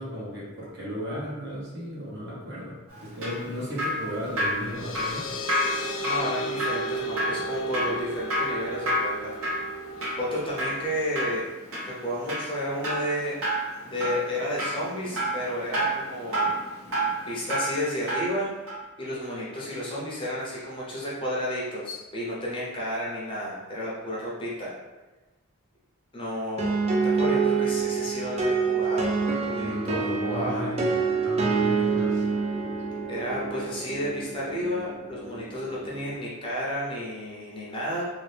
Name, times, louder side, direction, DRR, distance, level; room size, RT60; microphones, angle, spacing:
voice 1, 0.0-5.3 29.6-30.8 31.2-32.2, equal, 50° right, -6 dB, 1.0 m, -35 dB
Drip, 2.9-18.4 18.7-18.8, equal, 75° right, 1.1 m, -30 dB
sound 1, 4.2-11.4, right 1 dB, 65° left, 0.4 m, -35 dB
voice 2, 6.0-9.3 10.2-11.4 11.8-13.4 13.9-16.5 17.3-18.5 19.0-24.7 26.1-30.7 33.1-38.0, equal, 25° left, -6 dB, 0.6 m, -32 dB
sound 2, 26.6-36.2, right 5 dB, 30° right, 0.3 m, -27 dB
2.7 x 2.6 x 3.3 m, 1.1 s
head